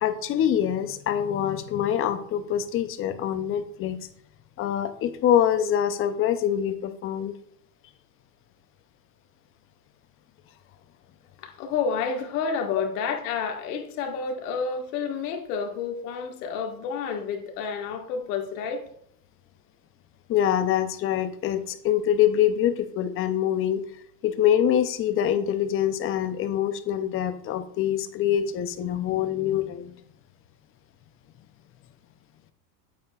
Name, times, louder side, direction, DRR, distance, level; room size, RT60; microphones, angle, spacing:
voice 1, 0.0-4.0 4.6-7.3 20.3-23.8 24.2-29.9, left 10 dB, 25° left, 10 dB, 0.6 m, -25 dB
voice 2, 11.4-18.8, left 5 dB, 65° left, 3 dB, 1.8 m, -30 dB
8.6 x 7.7 x 2.4 m, 0.65 s
supercardioid pair, 125°, 49 cm